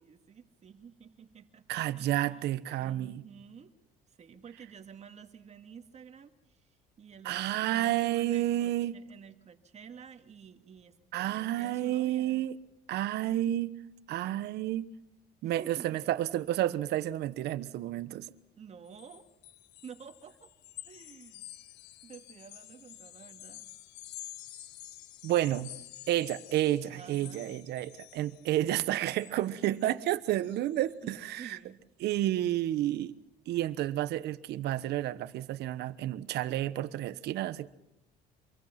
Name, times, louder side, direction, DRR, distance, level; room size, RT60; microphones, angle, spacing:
voice 1, 0.0-3.7 4.1-12.5 15.4-16.0 18.6-19.3 19.8-20.5 20.8-21.6 22.0-23.7 26.9-27.6 31.0-31.9, right 7 dB, 40° right, 2.1 m, -51 dB
voice 2, 1.7-3.2 7.2-8.9 11.1-12.6 12.9-13.7 14.1-14.9 15.4-18.3 25.2-25.7 26.1-31.6 32.0-33.1 33.5-37.7, right 13 dB, 75° right, 1.1 m, -30 dB
sound 1, 18.9-30.9, left 15 dB, 90° left, 1.0 m, -50 dB
26.5 x 23.0 x 5.9 m
cardioid pair, 110°, 17 cm